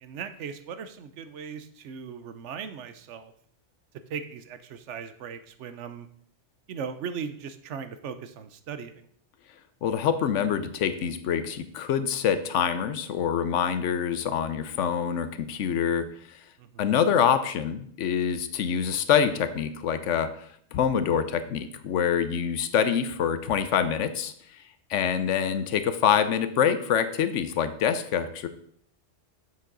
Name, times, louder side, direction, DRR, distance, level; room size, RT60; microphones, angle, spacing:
voice 1, 0.0-3.3 4.1-6.1 6.7-9.1 16.6-16.9 22.7-22.9, right 6 dB, 80° right, 10 dB, 1.0 m, -38 dB
voice 2, 9.8-16.1 16.8-20.3 20.7-24.3 24.9-28.5, left 8 dB, 80° left, 11 dB, 1.0 m, -25 dB
7.2 x 6.4 x 3.9 m, 0.64 s
omnidirectional pair, 1.2 m